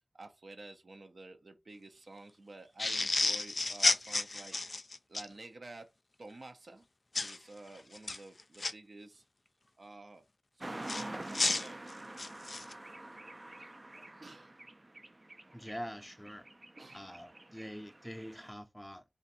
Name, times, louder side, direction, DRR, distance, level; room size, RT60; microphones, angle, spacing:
voice 1, 0.1-4.6 5.1-5.9 6.2-6.9 7.1-9.2 9.8-10.2 10.6-10.9 11.2-11.8 14.2-14.6 16.7-17.1, right 2 dB, 75° right, 0.7 m, -51 dB
sound 1, 2.8-5.3 7.1-7.4 7.9-8.7 10.8-12.7, left 2 dB, 60° left, 0.3 m, -31 dB
sound 2, 10.6-18.5, right 1 dB, 40° right, 0.4 m, -47 dB
voice 2, 15.5-16.4 16.9-19.0, equal, 10° left, 0.6 m, -45 dB
2.5 x 2.4 x 4.1 m
wide cardioid pair, 55°, 0 cm